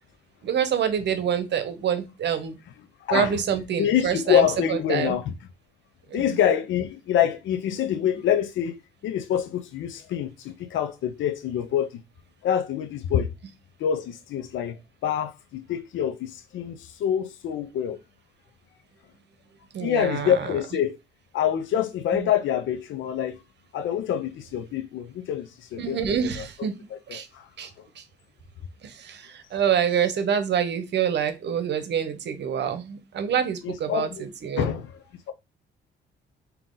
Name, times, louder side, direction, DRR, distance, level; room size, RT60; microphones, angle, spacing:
voice 1, 0.4-2.6 3.1-5.2 6.1-6.4 7.7-7.8 19.7-20.6 22.1-22.3 25.8-26.8 27.1-27.3 27.6-28.0 28.8-34.7, right 8 dB, 60° right, 0.8 m, -27 dB
voice 2, 3.0-3.4 3.8-5.3 6.1-12.0 12.4-13.3 13.8-18.0 19.8-21.0 21.3-23.4 23.7-26.2 27.1-27.5 33.6-34.2 34.6-34.9, left 9 dB, 75° left, 0.5 m, -26 dB
3.7 x 2.8 x 3.7 m
cardioid pair, 90°, 20 cm